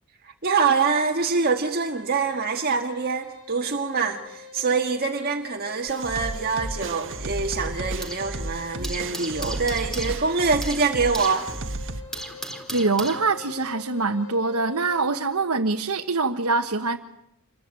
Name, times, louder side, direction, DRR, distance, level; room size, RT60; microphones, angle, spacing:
voice 1, 0.2-11.5, right 4 dB, 45° right, 3 dB, 1.7 m, -25 dB
sound 1, 1.7-15.4, left 5 dB, 70° left, 7.3 m, -45 dB
sound 2, 5.9-12.0, right 2 dB, 60° right, 1.5 m, -33 dB
sound 3, 6.3-8.4 8.6-13.7, right 1 dB, ahead, 4.0 m, -38 dB
voice 2, 12.7-17.0, right 3 dB, 85° right, 3 dB, 1.3 m, -24 dB
28.5 x 22.0 x 9.0 m, 0.81 s
head